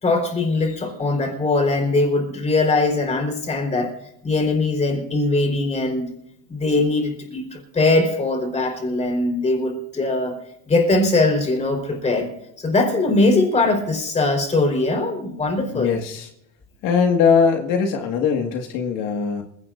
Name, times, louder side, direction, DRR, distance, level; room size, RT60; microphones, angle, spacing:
voice 1, 0.0-3.9 4.2-6.1 6.5-10.4 10.7-12.3 12.6-15.9, left 2 dB, 20° left, 3 dB, 4.3 m, -21 dB
voice 2, 15.7-16.3 16.8-19.4, left 6 dB, 70° left, 2 dB, 2.0 m, -20 dB
27.5 x 16.5 x 2.6 m, 0.77 s
cardioid pair, 160°, 34 cm